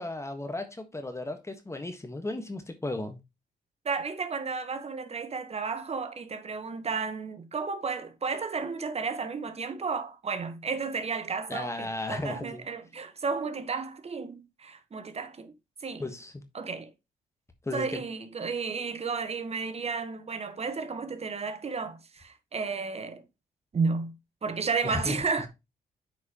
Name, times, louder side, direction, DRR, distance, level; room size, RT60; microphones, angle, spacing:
voice 1, 0.0-3.2 11.5-12.6 16.0-16.3 17.6-18.0 24.8-25.5, left 2 dB, 20° left, 1.4 m, -35 dB
voice 2, 3.8-15.5 15.8-16.0 16.5-16.9 17.7-23.2 23.7-24.1 24.4-25.5, right 5 dB, 40° right, 1.2 m, -32 dB
8.4 x 4.7 x 3.0 m
cardioid pair, 65°, 15 cm